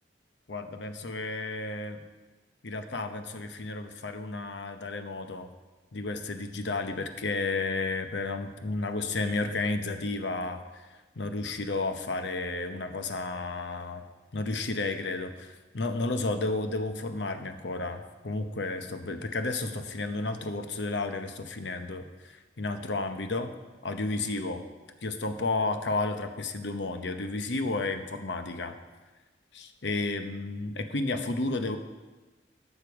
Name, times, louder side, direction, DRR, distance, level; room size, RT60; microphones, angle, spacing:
voice 1, 0.5-2.0 2.6-5.5 5.9-14.0 14.3-23.5 23.8-24.6 25.0-28.8 29.5-31.8, left 3 dB, 80° left, 8 dB, 0.8 m, -32 dB
12.0 x 6.7 x 4.7 m, 1.2 s
head